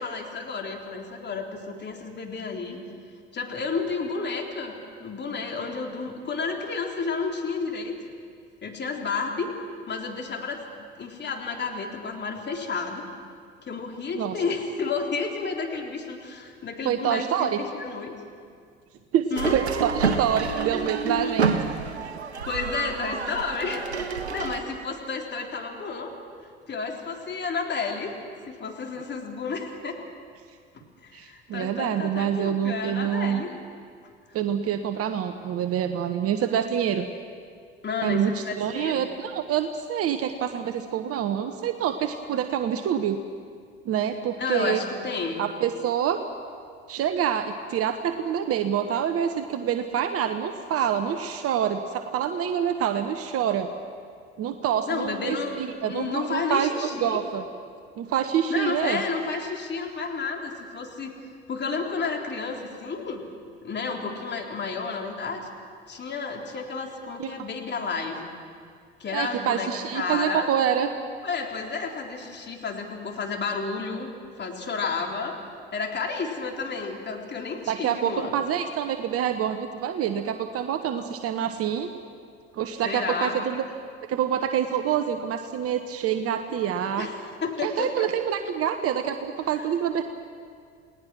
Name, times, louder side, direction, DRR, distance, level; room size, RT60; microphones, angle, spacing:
voice 1, 0.0-2.8 3.3-4.7 5.0-7.9 8.6-9.5 9.9-10.6 11.0-13.0 13.6-18.1 19.3-19.6 22.5-26.1 26.7-28.1 28.5-30.0 31.0-33.5 37.8-39.1 44.4-45.4 54.9-55.6 55.8-57.3 58.5-61.1 61.5-63.2 63.6-65.4 65.9-68.3 69.0-70.5 71.2-74.1 74.4-75.4 75.7-78.3 82.8-83.5 87.0-87.2 87.4-88.1, left 4 dB, 35° left, 2 dB, 3.6 m, -31 dB
voice 2, 16.8-17.6 19.1-21.5 31.1-33.4 34.3-37.1 38.0-43.2 43.8-44.8 45.4-46.2 46.9-53.7 54.4-57.4 58.0-59.0 67.2-67.3 69.1-70.9 77.7-81.9 82.5-83.6 84.1-87.1 87.6-90.0, right 9 dB, 45° right, 8 dB, 1.2 m, -26 dB
sound 1, 19.3-24.6, right 5 dB, 85° right, 1.1 m, -28 dB
29.0 x 19.0 x 6.2 m, 2.1 s
figure-of-eight pair, 60°, 32 cm